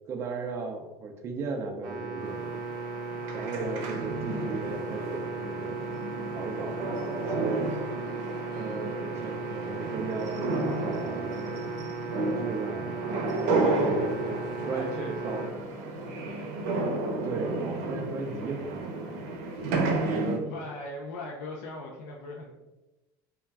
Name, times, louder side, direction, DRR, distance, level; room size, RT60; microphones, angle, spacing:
voice 1, 0.1-2.6 3.3-5.8 6.3-7.7 8.5-11.6 12.2-13.0 13.3-15.5 17.2-19.3 20.1-20.5, right 3 dB, 30° right, 3 dB, 0.3 m, -36 dB
sound 1, 1.8-15.5, right 4 dB, 50° right, 0.7 m, -37 dB
sound 2, 2.2-20.4, right 2 dB, 85° right, 0.5 m, -32 dB
voice 2, 3.2-3.7 13.6-16.6 20.4-22.5, left 2 dB, 85° left, -1 dB, 0.4 m, -41 dB
2.3 x 2.1 x 3.3 m, 1.1 s
cardioid pair, 150°, 9 cm